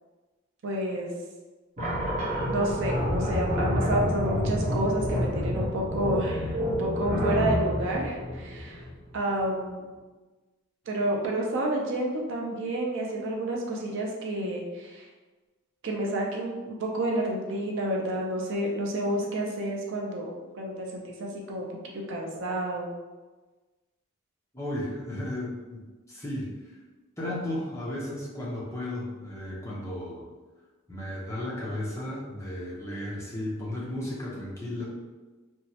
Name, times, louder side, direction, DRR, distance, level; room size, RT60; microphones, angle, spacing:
voice 1, 0.6-1.1 2.5-8.8 9.1-9.8 10.9-15.0 15.8-21.7 22.1-22.9, right 1 dB, 60° right, -1 dB, 0.5 m, -30 dB
sound 1, 1.8-9.2, equal, 35° right, 0.9 m, -28 dB
voice 2, 24.5-26.5 27.2-30.2 30.9-34.8, left 1 dB, 15° left, -6 dB, 0.6 m, -34 dB
3.0 x 2.3 x 2.7 m, 1.3 s
head